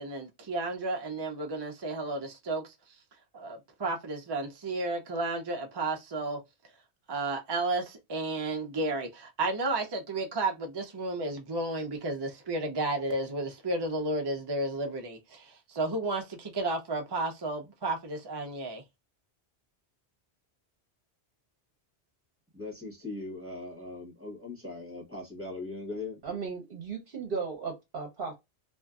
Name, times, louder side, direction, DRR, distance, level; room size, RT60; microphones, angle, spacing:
voice 1, 0.0-2.7 3.3-6.4 7.1-18.8, right 2 dB, 30° right, 0.5 m, -32 dB
voice 2, 22.5-26.2, left 3 dB, 15° right, 1.1 m, -40 dB
voice 3, 26.2-28.3, right 5 dB, 60° right, 0.9 m, -36 dB
2.6 x 2.5 x 2.2 m
omnidirectional pair, 1.1 m